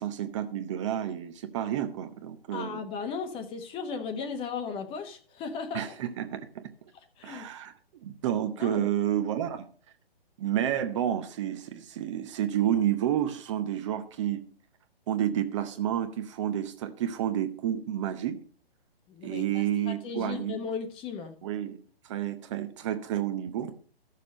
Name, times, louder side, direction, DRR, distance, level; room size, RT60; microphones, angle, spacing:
voice 1, 0.0-2.8 5.7-6.7 7.2-9.6 10.4-14.4 15.1-18.4 19.2-20.6 21.4-21.8 22.0-23.7, right 11 dB, 30° right, 8 dB, 0.9 m, -30 dB
voice 2, 2.5-5.9 7.2-7.5 8.6-8.8 19.1-21.3, left 5 dB, 15° left, 8 dB, 1.1 m, -36 dB
14.0 x 6.7 x 5.2 m, 0.43 s
figure-of-eight pair, 130°, 30 cm